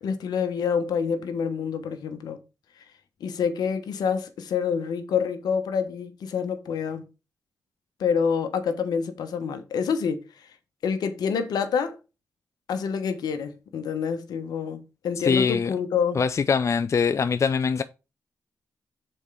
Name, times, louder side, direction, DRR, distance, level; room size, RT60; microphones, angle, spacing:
voice 1, 0.0-2.4 3.2-7.0 8.0-10.2 10.8-12.0 12.7-16.2, left 6 dB, 80° left, 1.1 m, -27 dB
voice 2, 15.2-15.7 16.1-17.8, left 6 dB, 45° left, 0.4 m, -23 dB
6.5 x 4.4 x 4.8 m
supercardioid pair, 40°, 7 cm